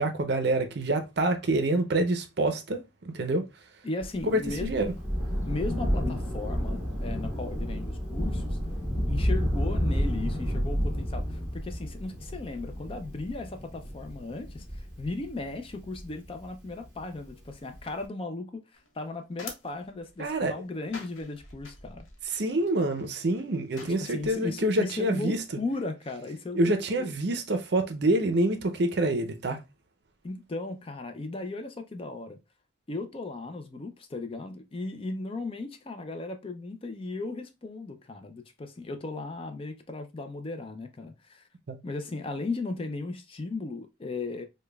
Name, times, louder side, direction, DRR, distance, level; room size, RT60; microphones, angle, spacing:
voice 1, 0.0-3.4 4.2-4.9 20.2-20.5 22.3-25.4 26.5-29.6 41.7-41.8, right 1 dB, 55° right, 0.5 m, -27 dB
voice 2, 3.8-4.8 5.5-8.6 9.1-22.1 23.8-27.1 30.2-32.4 32.9-41.5 41.8-44.5, left 3 dB, 30° left, 0.4 m, -36 dB
Thunder, 4.0-16.9 17.8-17.9, equal, ahead, 1.6 m, -31 dB
sound 1, 18.7-24.4, left 3 dB, 85° left, 0.9 m, -48 dB
5.0 x 2.2 x 2.2 m
head